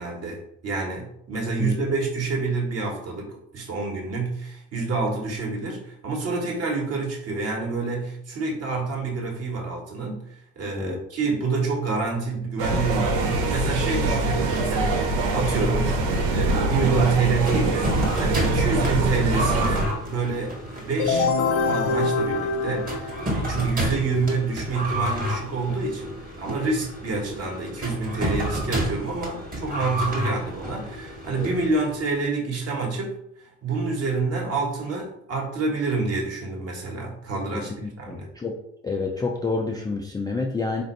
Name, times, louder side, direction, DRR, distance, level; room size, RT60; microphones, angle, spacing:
voice 1, 0.0-16.0 16.3-17.9 18.2-21.3 21.6-33.1 33.6-37.7 38.0-38.3, right 4 dB, 40° right, -1 dB, 1.3 m, -27 dB
sound 1, 12.6-19.9, right 2 dB, 70° right, 0.7 m, -24 dB
sound 2, 17.4-32.1, equal, 20° right, 1.2 m, -31 dB
sound 3, 21.0-23.7, left 4 dB, 55° left, 0.6 m, -24 dB
voice 2, 37.5-38.5 38.8-40.8, left 3 dB, 10° left, 0 dB, 0.3 m, -28 dB
4.1 x 2.5 x 3.1 m, 0.75 s
figure-of-eight pair, 50°, 38 cm